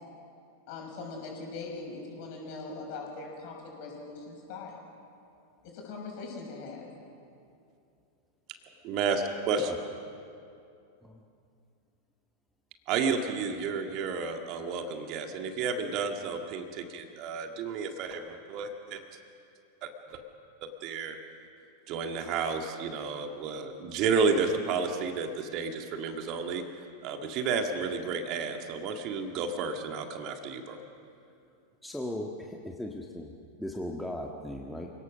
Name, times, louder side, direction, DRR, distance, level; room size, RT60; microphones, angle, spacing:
voice 1, 0.7-4.8 5.6-6.9, left 3 dB, 45° left, 0 dB, 6.7 m, -41 dB
voice 2, 8.8-9.7 12.9-19.0 19.8-20.2 20.6-21.2 21.9-26.6 27.0-30.8, right 5 dB, 40° right, 5 dB, 1.9 m, -31 dB
voice 3, 31.8-33.3 33.6-34.9, left 1 dB, 5° left, 0 dB, 1.6 m, -37 dB
28.5 x 18.0 x 6.4 m, 2.5 s
figure-of-eight pair, 90°, 0 cm